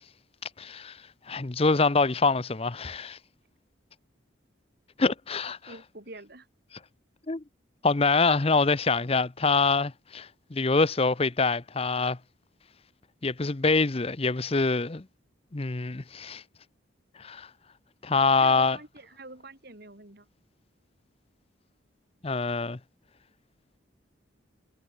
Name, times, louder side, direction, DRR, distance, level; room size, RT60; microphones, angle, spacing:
voice 1, 0.6-1.0 1.3-3.2 5.0-5.6 7.3-7.4 7.8-12.2 13.2-15.0 15.5-16.4 17.2-17.5 18.0-18.8 22.2-22.8, left 4 dB, 30° left, 0.7 m, -25 dB
voice 2, 5.6-6.5 18.3-20.3, right 2 dB, 55° right, 3.8 m, -46 dB
head